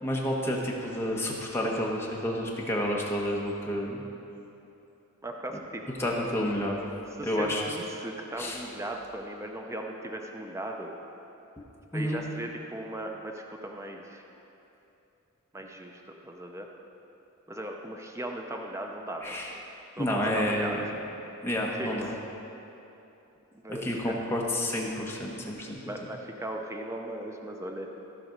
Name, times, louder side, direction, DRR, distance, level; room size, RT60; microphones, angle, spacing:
voice 1, 0.0-4.0 6.0-6.8 7.2-7.6 8.4-8.6 11.9-12.2 19.2-19.5 20.0-20.8 21.4-22.1 23.7-25.9, left 1 dB, 10° left, -2 dB, 1.2 m, -30 dB
voice 2, 5.2-5.8 7.2-10.9 11.9-14.2 15.5-16.7 17.5-19.5 20.0-20.8 21.7-22.2 23.5-24.2 25.8-27.9, right 1 dB, 15° right, 2 dB, 0.5 m, -38 dB
14.5 x 5.2 x 5.2 m, 2.9 s
head